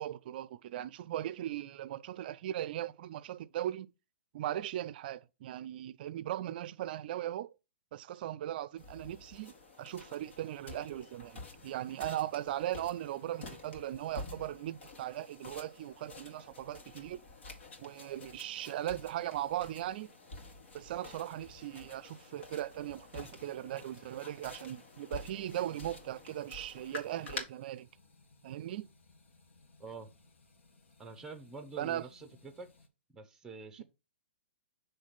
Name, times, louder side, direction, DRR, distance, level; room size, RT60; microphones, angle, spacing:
voice 1, 0.0-3.9 4.3-7.5 7.9-17.2 17.8-20.1 20.7-27.9 28.4-28.9 31.8-32.1, right 12 dB, 50° right, 0.4 m, -38 dB
sound 1, 8.8-27.4, left 3 dB, 70° left, 2.1 m, -49 dB
sound 2, 17.3-32.9, left 3 dB, 85° left, 1.5 m, -64 dB
voice 2, 29.8-30.1 31.0-32.7 33.1-33.8, right 4 dB, 10° right, 0.7 m, -47 dB
6.2 x 3.3 x 5.7 m
hypercardioid pair, 135°, 6 cm